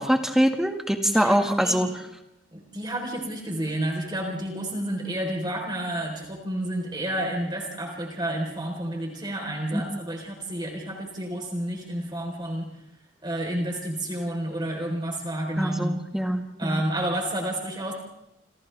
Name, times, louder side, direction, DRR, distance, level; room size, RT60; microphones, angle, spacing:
voice 1, 0.0-2.0 9.7-9.8 15.6-16.8, equal, 5° right, 4 dB, 1.8 m, -24 dB
voice 2, 1.1-1.9 2.5-12.7 13.2-15.9 16.6-17.9, right 1 dB, 25° right, 1 dB, 4.0 m, -30 dB
29.5 x 28.0 x 3.5 m, 0.83 s
head